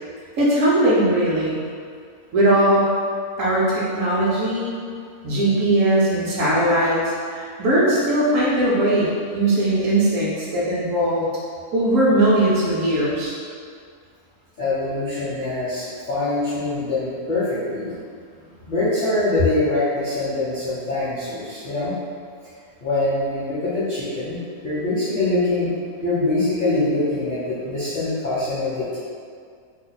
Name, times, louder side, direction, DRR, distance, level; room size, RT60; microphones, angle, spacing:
voice 1, 0.4-1.6 2.3-2.9 3.4-4.7 5.2-11.3 11.7-13.3, right 1 dB, 65° right, -6 dB, 0.9 m, -19 dB
voice 2, 14.6-17.9 18.7-22.0 22.8-24.4 24.6-25.7 26.0-29.0, left 2 dB, 50° left, -11 dB, 0.6 m, -24 dB
2.8 x 2.2 x 3.9 m, 2.2 s
omnidirectional pair, 1.6 m